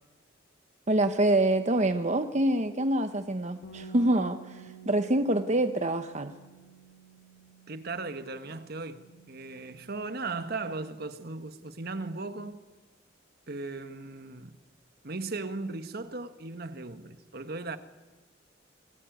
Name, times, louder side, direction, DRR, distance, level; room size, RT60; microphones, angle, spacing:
voice 1, 0.9-6.3, right 1 dB, 40° right, 1.0 m, -26 dB
Bass guitar, 3.6-9.9, right 4 dB, 80° left, 7.1 m, -51 dB
voice 2, 7.7-12.6 13.5-14.6 15.0-17.8, right 3 dB, 55° right, 1.6 m, -37 dB
29.5 x 20.5 x 9.3 m
head